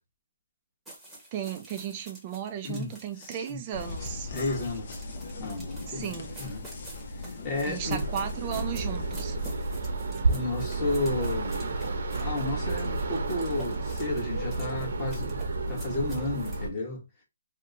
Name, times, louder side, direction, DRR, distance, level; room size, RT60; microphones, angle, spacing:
sound 1, 0.8-16.6, right 1 dB, 5° right, 1.0 m, -49 dB
voice 1, 1.3-4.3 5.9-6.3 7.6-9.4, right 9 dB, 30° right, 0.4 m, -35 dB
voice 2, 2.6-3.6 4.3-5.0 5.4-6.1 6.4-6.7 7.4-8.0 10.3-11.7 12.2-15.4 15.7-17.0, left 2 dB, 25° left, 1.1 m, -32 dB
sound 2, 3.7-9.5, left 2 dB, 55° left, 0.7 m, -39 dB
sound 3, 7.8-16.7, right 3 dB, 65° right, 0.8 m, -31 dB
2.8 x 2.1 x 3.6 m
hypercardioid pair, 160°, 0 cm